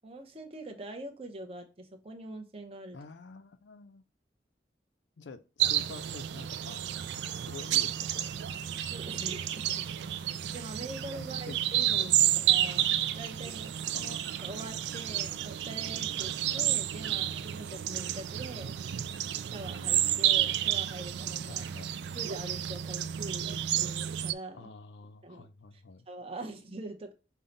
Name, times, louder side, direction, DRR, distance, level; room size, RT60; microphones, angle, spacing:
voice 1, 0.0-3.0 8.9-9.9 10.5-13.7 14.4-18.8 19.4-21.6 22.1-24.7 25.2-27.1, right 2 dB, 35° right, 0.7 m, -44 dB
voice 2, 2.9-4.0 5.2-6.8 7.1-8.3 11.2-11.6 11.9-12.4 13.9-14.3 21.5-22.2 24.5-26.1, left 4 dB, 80° left, 0.5 m, -48 dB
sound 1, 5.6-24.3, right 11 dB, 75° right, 0.3 m, -31 dB
5.5 x 2.2 x 3.8 m
head